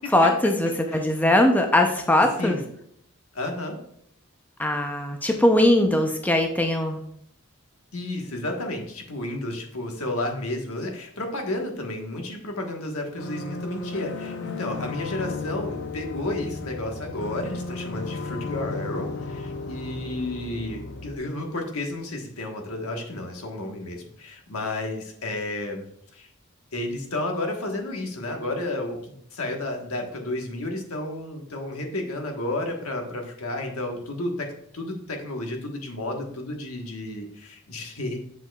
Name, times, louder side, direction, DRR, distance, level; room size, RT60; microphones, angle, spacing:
voice 1, 0.1-2.6 4.6-7.0, left 1 dB, 5° left, 3 dB, 0.5 m, -20 dB
voice 2, 3.3-3.8 7.9-25.9 26.1-26.3 26.7-34.5 34.7-38.2, left 1 dB, 85° left, 2 dB, 1.3 m, -32 dB
sound 1, 13.2-21.2, left 4 dB, 55° left, 0.6 m, -34 dB
7.3 x 6.6 x 2.3 m, 0.69 s
head